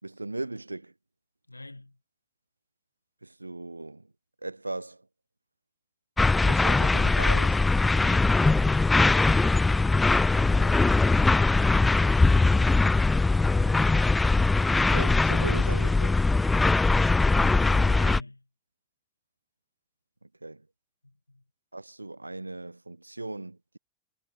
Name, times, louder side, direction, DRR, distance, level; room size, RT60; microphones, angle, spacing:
voice 1, 0.0-0.9 3.2-4.1 4.4-5.0 6.4-7.6 10.6-10.8 14.9-16.2 20.2-20.6 21.7-23.8, right 2 dB, 85° right, 5.2 m, -38 dB
voice 2, 1.5-2.0 8.0-8.4 17.3-18.4 21.0-21.4, left 2 dB, 85° left, 7.4 m, -44 dB
sound 1, 6.2-18.2, left 3 dB, 10° left, 0.3 m, -21 dB
figure-of-eight pair, 90°, 0 cm